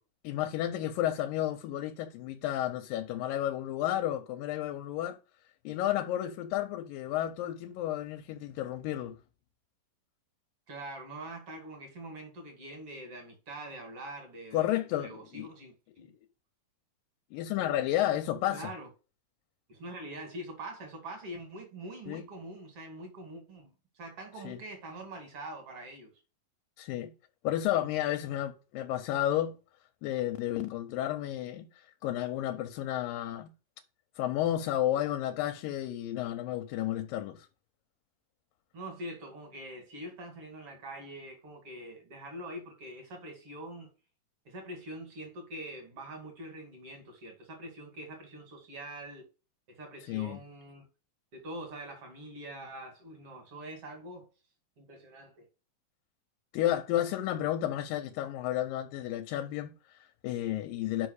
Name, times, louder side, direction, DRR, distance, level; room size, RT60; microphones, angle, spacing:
voice 1, 0.2-5.2 5.7-9.2 14.5-15.5 17.3-18.7 22.1-22.2 24.4-24.6 26.8-27.1 27.4-29.6 30.0-33.5 34.2-37.5 50.1-50.4 56.5-61.1, left 12 dB, 85° left, 2.4 m, -32 dB
voice 2, 10.7-16.1 18.5-18.9 19.7-26.2 38.7-43.9 44.4-49.2 49.7-50.8 51.3-54.3 54.8-55.5, right 1 dB, 45° right, 2.8 m, -44 dB
5.5 x 5.4 x 6.4 m
omnidirectional pair, 3.9 m